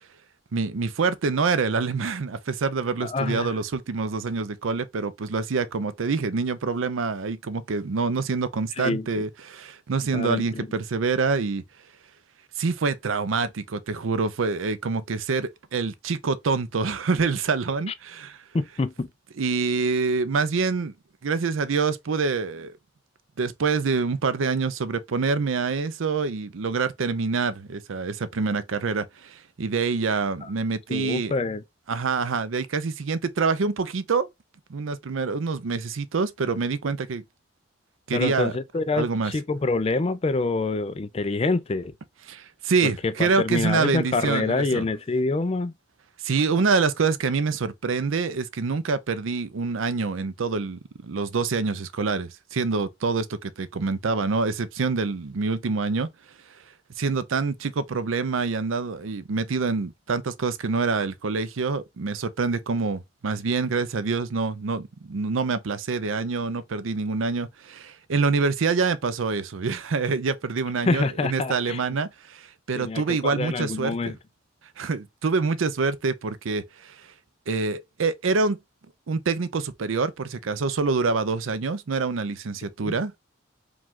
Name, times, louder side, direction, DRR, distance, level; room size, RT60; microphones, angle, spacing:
voice 1, 0.5-11.6 12.6-18.4 19.4-20.9 21.2-22.7 23.4-31.3 31.9-34.3 34.7-37.2 38.1-38.5 39.0-39.3 42.3-44.9 46.2-56.1 57.0-73.9 74.8-77.0 77.5-78.6 79.1-83.2, right 4 dB, 90° right, 0.5 m, -26 dB
voice 2, 3.0-3.5 8.8-9.1 10.1-10.7 18.5-19.1 30.4-30.5 30.9-31.6 38.1-41.9 42.8-45.7 70.8-71.8 72.8-74.2 82.8-82.9, left 3 dB, 30° left, 0.4 m, -26 dB
4.9 x 2.4 x 3.7 m
head